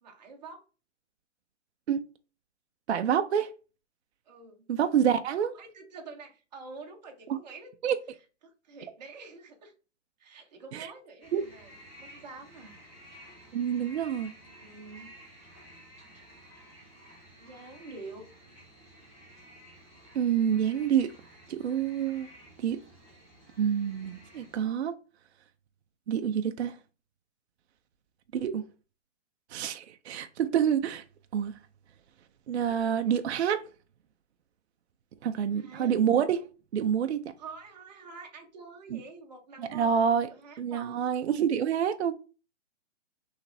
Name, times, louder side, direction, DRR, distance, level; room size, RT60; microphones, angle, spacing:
voice 1, 0.0-0.6 4.3-4.7 5.4-7.7 8.4-9.7 10.2-12.7 14.4-15.1 17.4-18.3 32.6-33.2 35.2-35.9 37.4-41.4, right 4 dB, 35° right, 0.9 m, -47 dB
voice 2, 2.9-3.5 4.7-5.5 7.3-7.4 7.8-8.0 10.7-10.9 11.3-11.4 13.5-14.3 20.1-21.1 21.5-22.3 22.6-22.8 23.6-25.0 26.1-26.8 28.3-28.6 29.5-31.0 31.3-31.5 32.5-33.6 35.2-36.5 36.7-37.3 38.9-39.0 39.6-40.3 40.6-42.1, right 8 dB, 60° right, 0.5 m, -27 dB
sound 1, 11.2-24.6, equal, 15° left, 1.5 m, -53 dB
5.8 x 3.2 x 2.6 m
hypercardioid pair, 170°, 37 cm